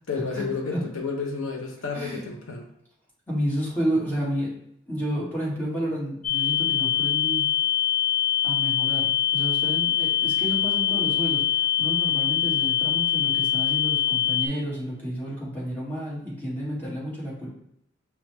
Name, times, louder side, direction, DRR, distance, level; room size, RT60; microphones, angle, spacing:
voice 1, 0.1-2.6, left 4 dB, 75° left, 2 dB, 0.7 m, -31 dB
voice 2, 1.9-2.3 3.3-4.5 4.9-7.4 8.4-17.5, equal, 10° left, -7 dB, 1.6 m, -31 dB
sound 1, 6.2-14.5, left 10 dB, 35° left, 0.4 m, -23 dB
5.3 x 2.3 x 3.2 m, 0.74 s
head